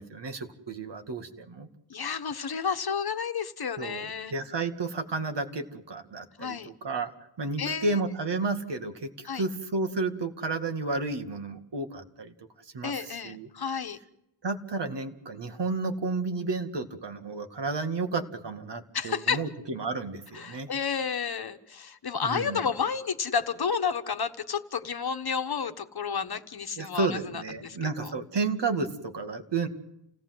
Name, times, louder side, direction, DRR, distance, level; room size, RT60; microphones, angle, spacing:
voice 1, 0.0-1.7 3.8-7.1 7.4-13.5 14.4-20.7 22.2-22.6 26.8-29.7, right 3 dB, 60° right, 7 dB, 2.3 m, -32 dB
voice 2, 1.9-4.3 6.4-6.7 7.6-8.0 9.2-9.4 12.8-14.0 18.9-19.4 20.3-28.1, left 6 dB, 50° left, 9 dB, 1.3 m, -31 dB
29.0 x 17.5 x 7.9 m, 0.86 s
wide cardioid pair, 150°, 48 cm